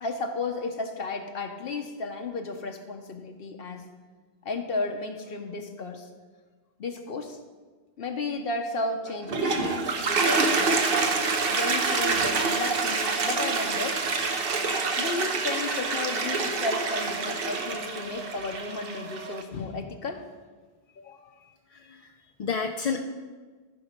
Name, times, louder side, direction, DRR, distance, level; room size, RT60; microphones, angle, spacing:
voice 1, 0.0-3.9 4.4-6.1 6.8-7.4 8.0-10.9 11.5-14.0 15.0-20.2 21.0-21.3, left 3 dB, 65° left, 4 dB, 0.9 m, -33 dB
Toilet flush, 9.1-19.4, right 4 dB, 65° right, 1.1 m, -27 dB
voice 2, 21.4-23.0, left 5 dB, 50° left, 3 dB, 0.5 m, -32 dB
14.5 x 5.3 x 5.2 m, 1.4 s
omnidirectional pair, 1.0 m